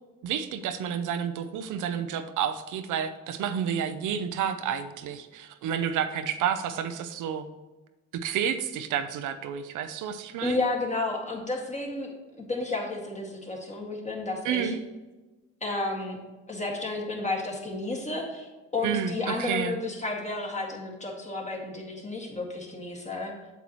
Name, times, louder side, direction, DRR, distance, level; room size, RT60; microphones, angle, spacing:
voice 1, 0.2-7.5 8.1-10.6 14.4-14.8 18.8-19.7, right 8 dB, 80° right, 8 dB, 0.7 m, -30 dB
voice 2, 10.4-14.7 15.6-16.2 16.5-23.3, left 2 dB, 25° left, 0 dB, 2.0 m, -32 dB
8.0 x 7.1 x 3.1 m, 1.2 s
cardioid pair, 90°, 30 cm